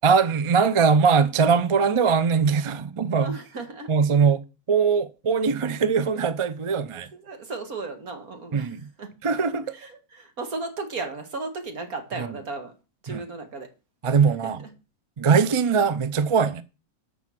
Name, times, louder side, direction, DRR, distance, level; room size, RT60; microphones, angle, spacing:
voice 1, 0.0-3.3 3.9-4.4 4.7-7.1 8.5-8.8 9.2-9.7 12.2-12.3 13.1-13.2 14.0-14.6 15.2-16.6, right 5 dB, 40° right, 0.4 m, -21 dB
voice 2, 3.1-3.9 7.1-9.1 9.7-12.7 13.0-13.7 14.4-14.7, right 3 dB, 70° right, 2.5 m, -35 dB
13.5 x 5.8 x 6.0 m
omnidirectional pair, 1.6 m